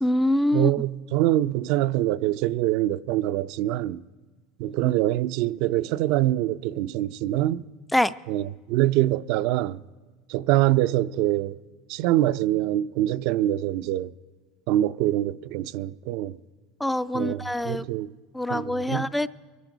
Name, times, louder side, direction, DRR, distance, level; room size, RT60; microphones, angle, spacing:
voice 1, 0.0-0.7 7.9-8.1 16.8-17.9 18.3-19.3, left 1 dB, 5° left, 0.3 m, -24 dB
voice 2, 0.5-4.0 4.6-7.6 8.3-9.8 10.3-11.6 11.9-14.1 14.7-16.4 17.1-18.1 18.5-19.1, right 14 dB, 65° right, 0.4 m, -24 dB
23.0 x 13.5 x 3.9 m
supercardioid pair, 110°, 0 cm